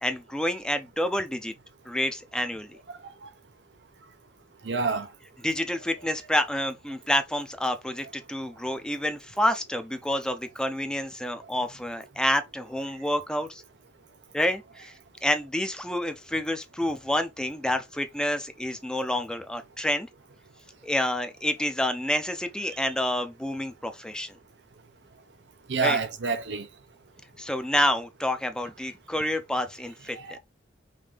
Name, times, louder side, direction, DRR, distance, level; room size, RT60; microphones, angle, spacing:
voice 1, 0.0-1.5 1.9-2.8 5.4-13.6 14.3-14.9 15.2-20.1 20.8-24.4 25.8-26.0 27.4-30.4, left 1 dB, 5° left, 0.5 m, -28 dB
voice 2, 2.9-3.3 4.6-5.1 25.7-26.7 30.1-30.4, right 4 dB, 85° right, 0.7 m, -28 dB
5.3 x 2.6 x 3.4 m
head